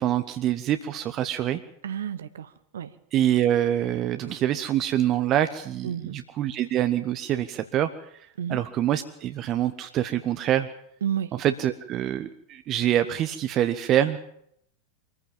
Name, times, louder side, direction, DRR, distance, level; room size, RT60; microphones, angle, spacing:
voice 1, 0.0-1.6 3.1-7.9 8.5-10.7 11.4-14.2, right 11 dB, 35° right, 9 dB, 1.0 m, -25 dB
voice 2, 1.8-2.9 5.8-6.1 8.4-8.6 11.0-11.4, right 9 dB, 65° right, 12 dB, 1.0 m, -31 dB
24.0 x 15.0 x 7.4 m, 0.72 s
figure-of-eight pair, 90°, 0 cm